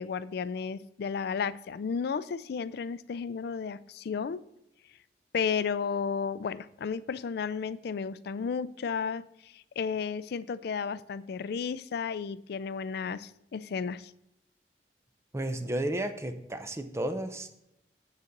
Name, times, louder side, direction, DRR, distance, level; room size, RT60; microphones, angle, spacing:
voice 1, 0.0-4.4 5.3-14.1, left 6 dB, 65° left, 0.4 m, -33 dB
voice 2, 15.3-17.5, right 1 dB, 15° right, 0.6 m, -32 dB
9.0 x 4.1 x 6.6 m
head